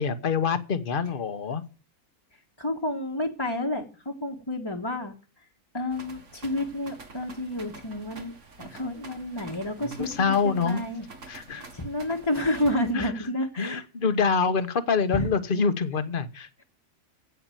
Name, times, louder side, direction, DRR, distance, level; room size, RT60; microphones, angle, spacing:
voice 1, 0.0-1.6 9.8-10.8 11.3-11.7 12.9-13.1 13.6-16.5, left 5 dB, 40° left, 12 dB, 1.2 m, -26 dB
voice 2, 2.6-5.1 5.7-8.3 8.6-11.0 11.5-13.8 15.1-15.3, left 1 dB, 20° left, -1 dB, 1.4 m, -30 dB
sound 1, 5.9-12.9, right 3 dB, 60° right, 2.0 m, -47 dB
16.5 x 5.9 x 9.1 m, 0.36 s
omnidirectional pair, 1.5 m